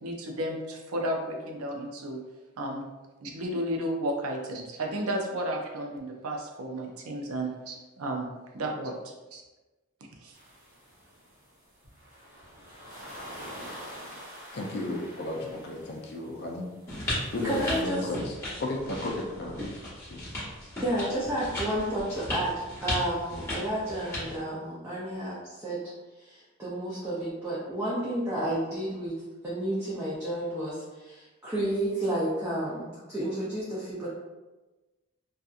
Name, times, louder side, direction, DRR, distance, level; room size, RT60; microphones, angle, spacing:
voice 1, 0.0-2.2 2.6-2.9 3.2-8.3 8.5-9.4 10.2-10.4, right 1 dB, 90° right, 1 dB, 0.5 m, -33 dB
sound 1, 10.3-17.8, equal, 60° right, 0.9 m, -46 dB
voice 2, 14.5-19.7 20.0-20.2, left 2 dB, 50° left, 0 dB, 0.5 m, -34 dB
sound 2, 16.9-24.4, left 1 dB, 15° left, 0.9 m, -36 dB
voice 3, 17.4-18.0 20.8-25.9 26.2-29.1 29.4-34.1, right 1 dB, 15° right, -10 dB, 0.5 m, -31 dB
2.7 x 2.3 x 2.4 m, 1.1 s
head